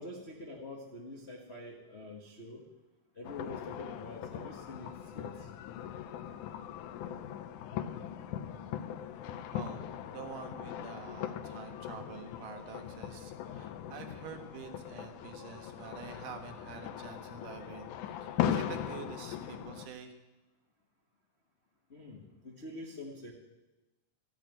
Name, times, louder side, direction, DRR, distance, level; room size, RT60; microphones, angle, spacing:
voice 1, 0.0-2.6 3.1-5.5 7.7-7.8 21.9-23.3, left 2 dB, 60° left, -1 dB, 0.6 m, -46 dB
sound 1, 3.2-19.9, left 10 dB, 75° left, 2.0 m, -39 dB
voice 2, 9.5-20.1, right 7 dB, 75° right, 5 dB, 2.9 m, -47 dB
14.5 x 8.7 x 9.2 m, 1.1 s
omnidirectional pair, 3.8 m